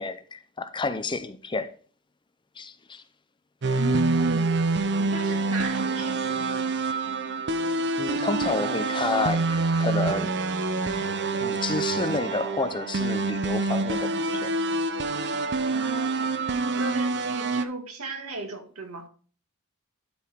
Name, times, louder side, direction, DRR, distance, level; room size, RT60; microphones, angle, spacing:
voice 1, 0.0-1.7 2.6-3.0 8.0-10.3 11.4-14.5, left 3 dB, 20° left, 0.6 m, -30 dB
sound 1, 3.6-17.6, right 3 dB, 55° right, 0.7 m, -26 dB
voice 2, 3.8-4.4 5.1-6.8 15.6-16.3 16.8-19.1, right 2 dB, 90° right, 1.9 m, -33 dB
11.5 x 4.9 x 3.6 m
head